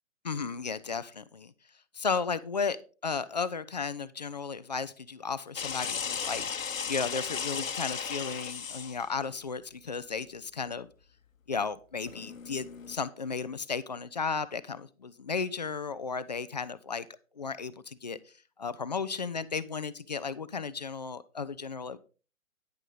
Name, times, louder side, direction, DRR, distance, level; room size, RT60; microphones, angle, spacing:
voice 1, 0.2-1.5 1.9-2.8 3.0-10.9 11.5-17.1 17.4-18.2 18.6-22.0, left 5 dB, 35° left, 15 dB, 0.4 m, -34 dB
sound 1, 5.6-9.1 12.0-13.0, left 6 dB, 70° left, 1.0 m, -35 dB
10.0 x 8.9 x 3.9 m, 0.35 s
figure-of-eight pair, 130°, 41 cm